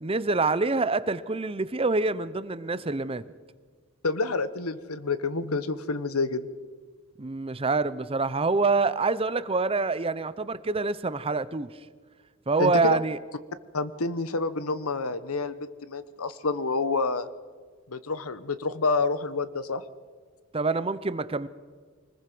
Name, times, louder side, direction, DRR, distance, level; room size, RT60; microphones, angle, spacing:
voice 1, 0.0-3.2 7.2-11.7 12.5-13.2 20.5-21.5, right 3 dB, 25° right, 15 dB, 0.7 m, -26 dB
voice 2, 4.0-6.5 12.6-13.0 13.7-15.5 15.8-17.3 17.9-19.8, left 3 dB, 80° left, 14 dB, 1.1 m, -28 dB
25.0 x 20.0 x 6.1 m, 1.5 s
head